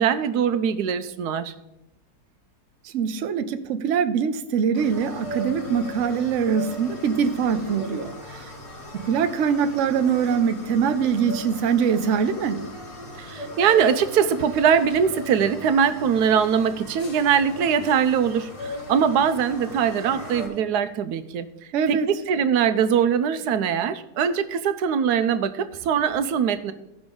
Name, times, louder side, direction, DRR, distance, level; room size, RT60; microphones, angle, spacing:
voice 1, 0.0-1.5 13.2-21.5 21.9-26.7, right 7 dB, 85° right, 12 dB, 1.2 m, -22 dB
voice 2, 2.8-8.5 9.0-12.6 21.7-22.1, right 7 dB, 60° right, 9 dB, 0.9 m, -23 dB
sound 1, 4.7-20.5, left 1 dB, 75° left, 3.6 m, -37 dB
15.5 x 6.0 x 3.7 m, 0.90 s
omnidirectional pair, 1.7 m